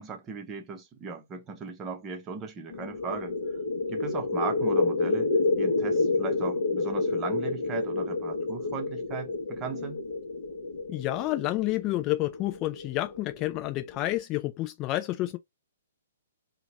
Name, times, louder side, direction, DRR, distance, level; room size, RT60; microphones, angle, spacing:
voice 1, 0.0-3.6 3.9-10.0, right 5 dB, 20° right, 0.7 m, -38 dB
sound 1, 2.7-14.2, left 3 dB, 50° left, 0.8 m, -29 dB
voice 2, 10.9-15.4, left 17 dB, 25° left, 0.3 m, -29 dB
2.8 x 2.2 x 2.8 m
figure-of-eight pair, 120°, 0 cm